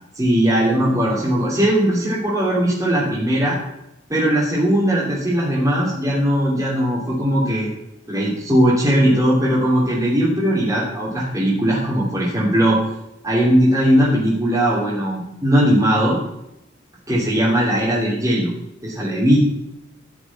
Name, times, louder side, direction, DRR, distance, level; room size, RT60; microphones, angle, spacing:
voice 1, 0.1-3.6 4.1-7.7 8.1-12.8 13.2-16.2 17.1-18.5 18.8-19.4, equal, 20° right, -8 dB, 3.0 m, -19 dB
12.5 x 6.0 x 6.1 m, 0.85 s
head